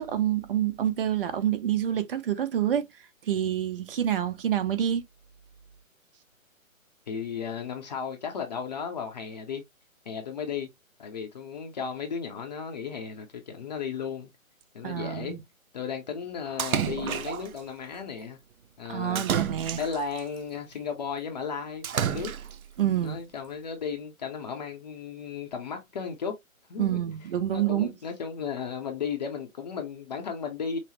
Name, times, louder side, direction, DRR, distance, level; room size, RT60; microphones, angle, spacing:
voice 1, 0.0-2.9 3.2-5.0 14.8-15.4 18.9-19.8 22.8-23.2 26.8-27.9, right 10 dB, 40° right, 0.7 m, -27 dB
voice 2, 7.1-9.6 10.1-10.7 11.0-14.3 14.7-15.4 15.7-18.4 18.8-19.2 19.8-22.3 23.0-26.4 26.7-27.0 27.5-30.8, left 6 dB, 30° left, 0.6 m, -35 dB
Splash splatter, 16.6-17.6 19.2-20.2 21.8-22.7, right 9 dB, 85° right, 0.5 m, -30 dB
5.6 x 2.0 x 3.0 m
figure-of-eight pair, 140°, 41 cm